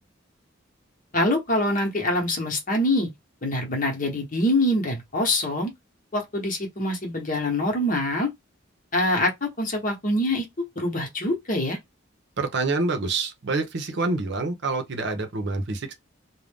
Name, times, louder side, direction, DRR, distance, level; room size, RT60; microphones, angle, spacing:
voice 1, 1.1-3.1 3.4-5.7 6.1-8.3 8.9-10.5 10.8-11.8, left 1 dB, 40° left, 1.0 m, -24 dB
voice 2, 12.4-15.9, right 3 dB, 60° right, 0.7 m, -27 dB
2.5 x 2.2 x 3.4 m
head